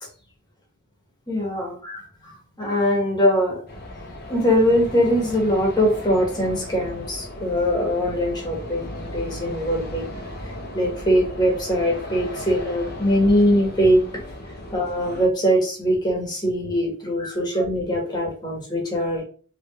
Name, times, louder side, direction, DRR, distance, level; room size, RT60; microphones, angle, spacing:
voice 1, 1.3-2.3 2.6-3.6 4.3-10.1 10.7-14.0 14.7-19.2, equal, 20° left, -2 dB, 1.2 m, -22 dB
sound 1, 3.7-15.3, left 1 dB, 55° left, 0.7 m, -36 dB
3.5 x 3.2 x 2.3 m, 0.40 s
head